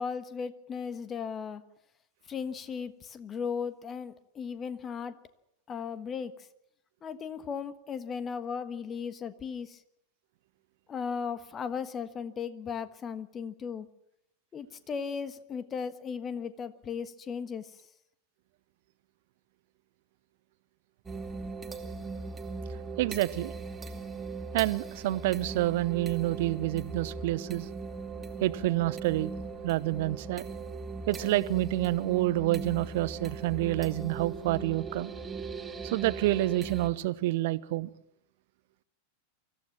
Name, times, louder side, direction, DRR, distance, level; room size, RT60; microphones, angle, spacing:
voice 1, 0.0-1.6 2.3-5.2 5.7-6.3 7.0-9.8 10.9-13.9 14.5-17.7, left 6 dB, 25° left, 1.4 m, -36 dB
sound 1, 21.0-36.9, right 4 dB, 15° right, 2.4 m, -39 dB
voice 2, 23.0-23.5 24.5-27.7 28.4-29.3 29.6-30.5 31.1-35.1 35.8-37.9, right 17 dB, 50° right, 0.9 m, -28 dB
24.5 x 15.0 x 7.5 m
figure-of-eight pair, 90°, 0 cm